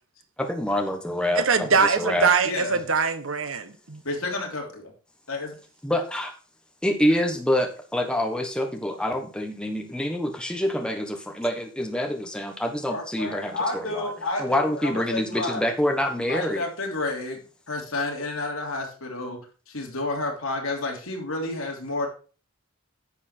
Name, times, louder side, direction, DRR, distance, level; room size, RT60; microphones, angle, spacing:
voice 1, 0.4-2.3 5.8-6.3 6.8-14.1 14.4-16.7, left 1 dB, 5° left, 1.2 m, -26 dB
voice 2, 1.3-4.0, right 5 dB, 65° right, 1.1 m, -23 dB
voice 3, 2.4-2.8 4.0-4.9 5.3-5.5 12.9-15.6 16.2-17.4 17.7-19.4 19.7-22.1, left 2 dB, 70° left, 3.2 m, -30 dB
10.5 x 6.9 x 4.4 m
head